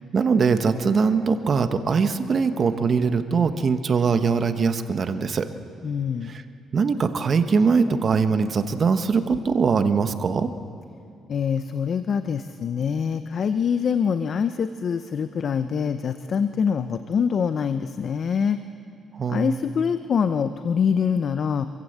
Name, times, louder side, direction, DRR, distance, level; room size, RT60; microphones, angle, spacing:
voice 1, 0.1-5.5 6.3-6.4 6.7-10.5 19.2-19.6, right 5 dB, 45° right, 9 dB, 1.2 m, -22 dB
voice 2, 5.8-6.4 11.3-18.6 19.3-21.7, left 6 dB, 55° left, 10 dB, 0.7 m, -24 dB
26.5 x 15.5 x 8.1 m, 2.5 s
cardioid pair, 90°, 0 cm